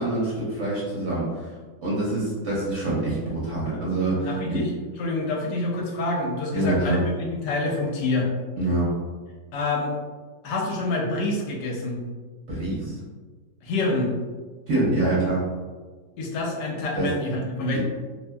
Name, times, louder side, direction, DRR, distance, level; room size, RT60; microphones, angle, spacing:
voice 1, 0.0-1.4 1.8-4.7 6.5-7.0 8.6-8.9 12.5-13.0 14.7-15.4 16.9-17.1, right 2 dB, 55° right, -7 dB, 1.0 m, -25 dB
voice 2, 4.3-4.7 5.0-8.3 9.5-9.9 10.4-12.0 13.6-14.1 16.2-17.8, left 2 dB, 85° left, 0 dB, 1.2 m, -27 dB
2.8 x 2.7 x 2.2 m, 1.4 s
omnidirectional pair, 1.8 m